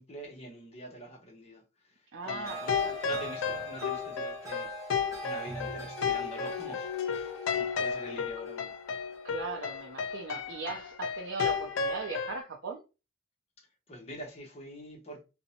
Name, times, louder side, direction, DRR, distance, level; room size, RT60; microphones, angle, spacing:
voice 1, 0.0-1.6 1.9-2.0 2.3-2.7 3.0-5.0 5.2-8.7 13.6-15.2, equal, 35° left, 0.7 m, -45 dB
voice 2, 2.1-3.2 7.3-7.5 9.2-12.8, right 4 dB, 80° right, 0.4 m, -39 dB
sound 1, 2.2-12.4, left 6 dB, 90° left, 0.3 m, -33 dB
sound 2, 2.4-9.6, right 1 dB, 15° right, 0.6 m, -43 dB
2.5 x 2.0 x 2.7 m
head